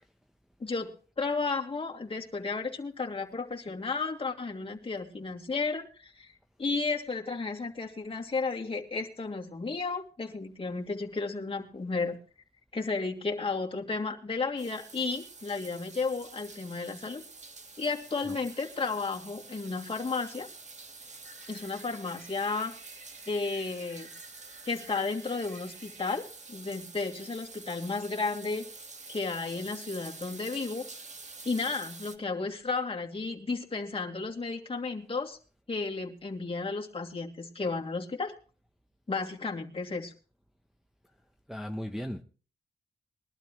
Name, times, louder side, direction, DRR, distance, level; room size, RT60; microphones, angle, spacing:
voice 1, 0.6-6.3 6.6-12.2 12.7-17.2 17.8-20.5 21.5-22.7 23.3-24.1 24.6-28.6 29.1-30.9 31.4-35.4 35.7-38.3 39.1-40.1, left 4 dB, 30° left, 2.6 m, -33 dB
sound 1, 14.6-32.2, right 3 dB, 40° right, 1.8 m, -48 dB
sound 2, 21.2-26.1, right 3 dB, 65° right, 6.9 m, -55 dB
voice 2, 41.5-42.2, equal, ahead, 0.9 m, -36 dB
22.0 x 12.0 x 3.2 m
cardioid pair, 80°, 18 cm